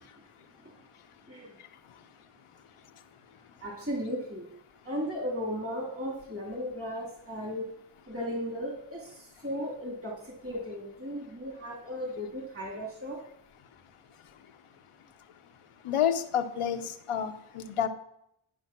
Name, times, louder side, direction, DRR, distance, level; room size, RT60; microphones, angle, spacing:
voice 1, 3.6-4.5 4.8-7.6 8.1-13.2, equal, 25° right, -1 dB, 2.7 m, -36 dB
voice 2, 15.8-17.9, left 9 dB, 90° left, 8 dB, 0.8 m, -29 dB
11.0 x 5.2 x 5.9 m, 0.75 s
cardioid pair, 45°, 50 cm